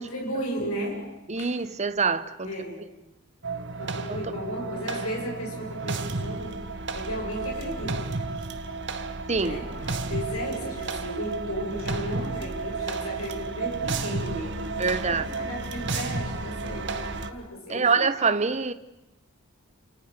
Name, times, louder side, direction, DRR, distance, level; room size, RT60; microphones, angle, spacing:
voice 1, 0.0-1.6 2.4-2.9 3.8-6.7 6.9-8.1 9.4-18.1, equal, 75° left, 7.9 m, -35 dB
voice 2, 1.3-2.5 9.3-9.6 14.8-15.2 17.7-18.7, right 4 dB, 30° right, 1.1 m, -25 dB
sound 1, 3.4-17.3, right 3 dB, 50° right, 1.8 m, -32 dB
29.5 x 29.0 x 6.8 m
head